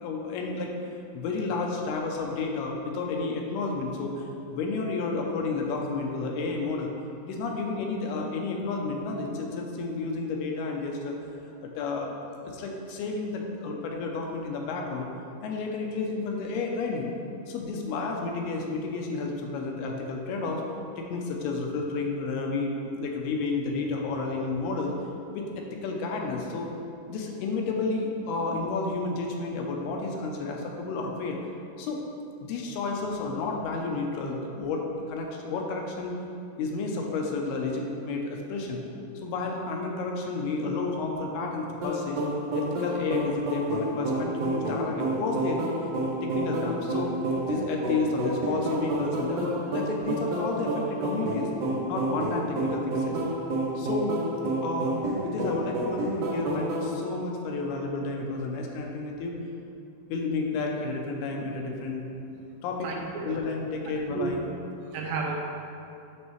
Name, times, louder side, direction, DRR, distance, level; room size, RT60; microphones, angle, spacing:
voice 1, 0.0-0.7 1.1-6.9 7.3-11.2 11.6-12.2 12.4-15.1 15.4-17.1 17.5-20.6 21.0-24.9 25.3-26.7 27.1-31.4 31.8-32.0 32.4-36.1 36.6-38.8 39.2-42.2 42.5-45.6 46.2-47.1 47.4-51.5 51.9-53.2 53.8-54.2 54.6-55.0 55.2-59.4 60.1-62.1 62.6-62.9 63.2-64.4, left 3 dB, 80° left, 0 dB, 2.6 m, -31 dB
sound 1, 41.8-56.9, right 1 dB, 70° right, 1.5 m, -29 dB
voice 2, 62.8-63.4 64.1-64.3 64.9-65.4, right 5 dB, 90° right, -1 dB, 3.1 m, -32 dB
9.3 x 6.5 x 3.1 m, 2.6 s
omnidirectional pair, 4.7 m